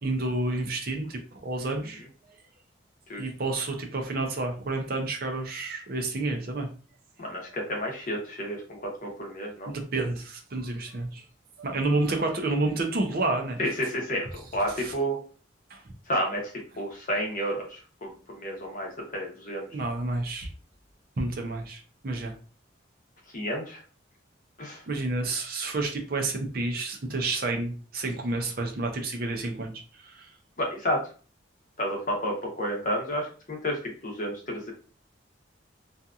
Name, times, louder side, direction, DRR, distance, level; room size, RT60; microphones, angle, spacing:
voice 1, 0.0-2.0 3.1-6.7 9.6-11.2 11.6-13.6 14.6-14.9 15.7-15.9 19.7-20.5 21.2-22.3 24.9-30.3, right 2 dB, 50° right, 3 dB, 0.6 m, -30 dB
voice 2, 7.2-9.7 13.6-15.2 16.1-16.5 16.8-19.7 23.3-23.8 24.6-24.8 30.6-31.0 31.8-33.8 34.0-34.7, equal, 40° left, 0 dB, 0.8 m, -31 dB
2.7 x 2.5 x 2.3 m, 0.38 s
head